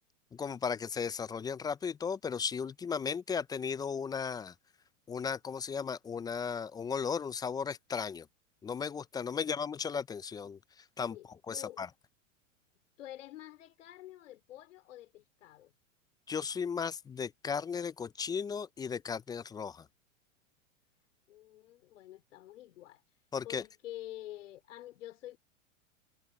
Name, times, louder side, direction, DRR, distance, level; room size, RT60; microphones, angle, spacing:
voice 1, 0.3-4.5 5.1-8.3 8.6-10.6 11.0-11.2 11.5-11.9 16.3-19.8 23.3-23.6, left 6 dB, 10° left, 0.4 m, -35 dB
voice 2, 11.1-11.8 13.0-15.7 21.3-23.0 23.4-25.4, left 14 dB, 70° left, 3.2 m, -48 dB
hypercardioid pair, 105°, 39 cm